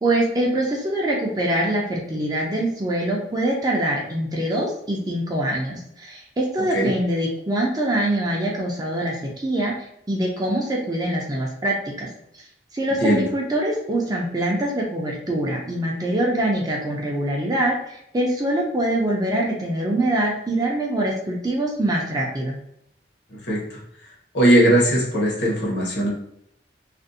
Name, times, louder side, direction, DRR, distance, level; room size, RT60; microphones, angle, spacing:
voice 1, 0.0-9.7 10.1-12.1 12.3-12.4 12.7-22.6, right 1 dB, 20° right, -1 dB, 0.4 m, -24 dB
voice 2, 23.3-23.8 24.3-26.1, right 1 dB, 65° left, -3 dB, 0.8 m, -19 dB
2.5 x 2.0 x 2.6 m, 0.74 s
head